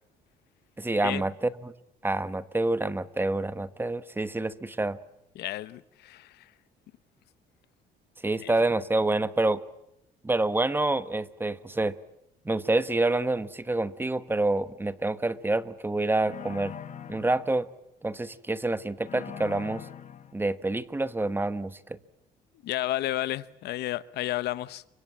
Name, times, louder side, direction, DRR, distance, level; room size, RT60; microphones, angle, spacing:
voice 1, 0.8-1.7 2.0-5.0 8.2-9.6 10.2-11.9 12.4-16.7 17.1-17.7 18.0-19.8 20.3-22.0, right 2 dB, 10° right, 1.3 m, -27 dB
voice 2, 5.3-6.4 8.4-8.5 22.6-24.8, left 15 dB, 75° left, 1.0 m, -32 dB
sound 1, 16.2-17.6 19.0-20.3, left 9 dB, 45° left, 1.8 m, -42 dB
30.0 x 24.5 x 7.4 m
cardioid pair, 110°, 17 cm